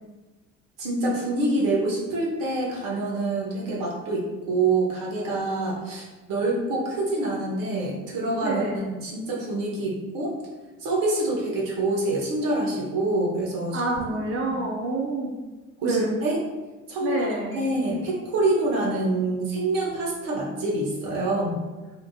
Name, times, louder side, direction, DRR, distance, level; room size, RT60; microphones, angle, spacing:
voice 1, 0.8-8.7 9.0-10.3 10.8-13.8 14.5-14.6 15.8-16.4 16.9-17.3 17.5-21.6, right 2 dB, 60° right, -3 dB, 1.1 m, -26 dB
voice 2, 8.4-8.8 11.3-11.4 13.7-15.3 15.8-16.2 17.0-17.6, right 2 dB, 35° right, -2 dB, 0.5 m, -27 dB
3.6 x 2.4 x 2.3 m, 1.2 s
hypercardioid pair, 60°, 37 cm